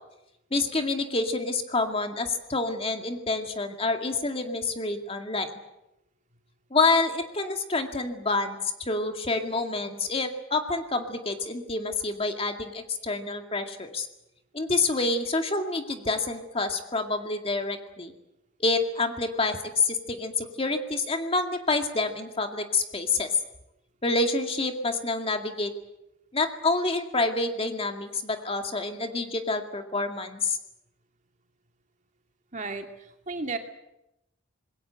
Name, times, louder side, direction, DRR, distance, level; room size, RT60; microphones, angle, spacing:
voice 1, 0.5-5.5 6.7-14.1 14.5-18.1 18.6-23.3 24.0-25.7 26.3-30.6, left 3 dB, 30° left, 5 dB, 2.2 m, -28 dB
voice 2, 32.5-33.6, right 3 dB, 40° right, 5 dB, 2.5 m, -34 dB
26.5 x 21.5 x 7.9 m, 0.88 s
head